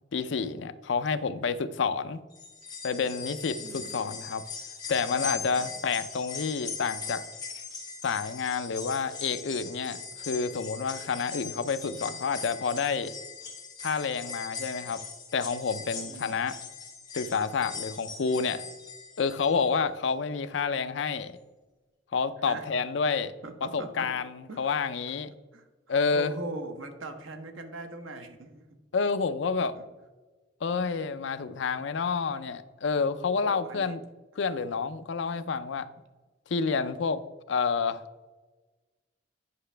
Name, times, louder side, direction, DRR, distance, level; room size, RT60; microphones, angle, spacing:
voice 1, 0.1-2.2 2.8-4.4 4.9-7.2 8.0-13.1 13.8-15.0 15.3-16.6 17.1-18.6 19.2-21.3 22.1-23.3 23.6-25.3 25.9-26.3 28.9-29.8 30.6-34.0 34.4-35.9 36.5-37.2 37.5-38.0, left 5 dB, 65° left, 12 dB, 0.4 m, -29 dB
sound 1, 2.3-19.6 20.0-20.1 21.2-21.3, left 5 dB, 20° left, 1.5 m, -40 dB
voice 2, 3.6-4.2 5.6-5.8 16.1-16.4 22.4-22.7 23.4-24.1 24.5-24.7 25.5-28.7 29.7-29.8 33.4-33.9, right 2 dB, 85° right, 6 dB, 1.0 m, -41 dB
9.6 x 5.7 x 3.3 m, 1.2 s
head